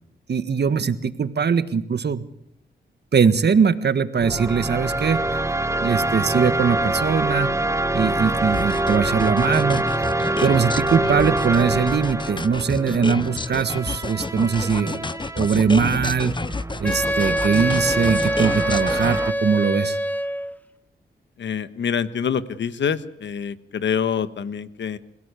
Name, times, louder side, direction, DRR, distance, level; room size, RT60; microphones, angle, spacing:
voice 1, 0.3-2.2 3.1-5.2 5.8-7.5 7.9-9.8 10.4-15.1 15.3-16.3 16.8-20.0, right 6 dB, 60° right, 12 dB, 1.6 m, -21 dB
Eflat Minor Synth Pad, 4.2-19.3, right 2 dB, 15° right, 1.4 m, -26 dB
sound 1, 8.5-19.2, left 3 dB, 25° left, 0.8 m, -30 dB
Wind instrument woodwind instrument, 16.8-20.6, equal, 10° left, 1.1 m, -24 dB
voice 2, 21.4-25.0, left 7 dB, 75° left, 13 dB, 1.5 m, -26 dB
28.0 x 16.5 x 8.3 m, 0.75 s
cardioid pair, 55°, 19 cm